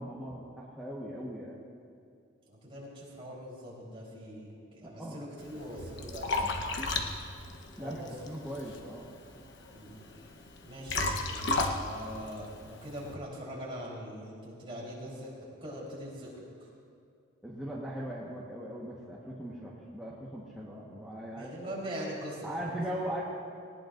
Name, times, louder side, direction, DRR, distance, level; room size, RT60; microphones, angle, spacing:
voice 1, 0.0-1.6 5.0-5.2 7.8-8.0 8.3-9.1 17.4-21.5 22.4-23.2, equal, ahead, -8 dB, 1.3 m, -39 dB
voice 2, 2.5-6.9 7.8-8.1 9.7-10.0 10.6-16.7 21.3-22.8, equal, 25° right, -6 dB, 3.9 m, -42 dB
Liquid, 5.4-13.1, left 2 dB, 60° left, 1.1 m, -35 dB
19.0 x 18.5 x 2.6 m, 2.3 s
head